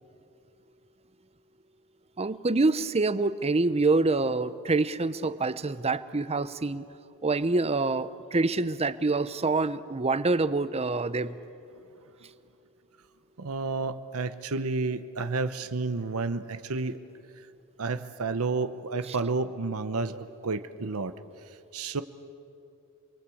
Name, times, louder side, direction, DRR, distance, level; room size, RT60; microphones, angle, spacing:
voice 1, 2.2-6.8 7.2-11.4 19.1-19.2, right 3 dB, 30° right, 15 dB, 0.7 m, -26 dB
voice 2, 13.4-17.0 17.8-21.1 21.7-22.0, right 3 dB, 70° right, 11 dB, 0.9 m, -30 dB
29.0 x 21.5 x 8.5 m, 2.7 s
head